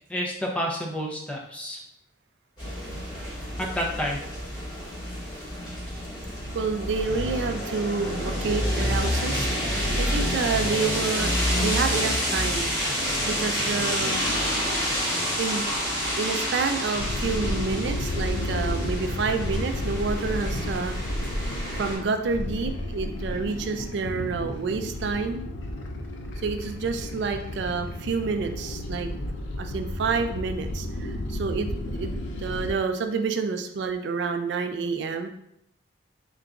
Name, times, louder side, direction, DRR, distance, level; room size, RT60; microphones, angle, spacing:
voice 1, 0.1-1.8 3.6-4.2 20.4-20.7, equal, 5° left, -2 dB, 0.5 m, -30 dB
sound 1, 2.6-22.0, equal, 25° left, 1.3 m, -28 dB
voice 2, 6.5-11.3 11.6-12.7 13.2-14.5 15.4-15.7 16.2-20.9 21.8-25.5 26.4-29.1 29.6-31.7 31.9-32.1 32.4-35.3, right 4 dB, 65° right, 7 dB, 0.3 m, -29 dB
sound 2, 16.9-32.7, left 1 dB, 75° left, 0.5 m, -32 dB
3.8 x 2.3 x 3.6 m, 0.76 s
head